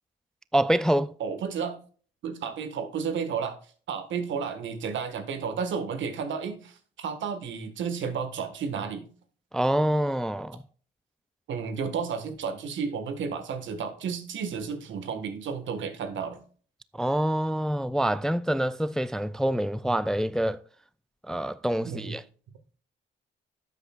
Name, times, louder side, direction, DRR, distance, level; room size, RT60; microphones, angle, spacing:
voice 1, 0.5-1.1 9.5-10.6 16.9-20.6 21.3-22.2, right 1 dB, 5° left, 0.3 m, -26 dB
voice 2, 1.2-1.8 2.2-3.6 3.9-9.0 11.5-16.4 21.8-22.2, right 6 dB, 70° right, 1.6 m, -32 dB
11.5 x 8.1 x 2.4 m
cardioid pair, 90°, 20 cm